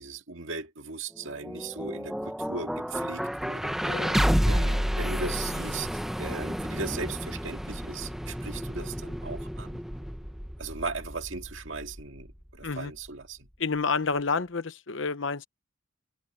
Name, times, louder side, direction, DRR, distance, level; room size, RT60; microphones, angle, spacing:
voice 1, 0.0-5.9 6.2-9.9 10.6-13.5, right 4 dB, 70° right, 2.0 m, -38 dB
sound 1, 1.2-13.2, equal, ahead, 1.1 m, -31 dB
voice 2, 3.8-4.2 12.6-12.9 13.6-15.4, left 4 dB, 65° left, 1.0 m, -29 dB
head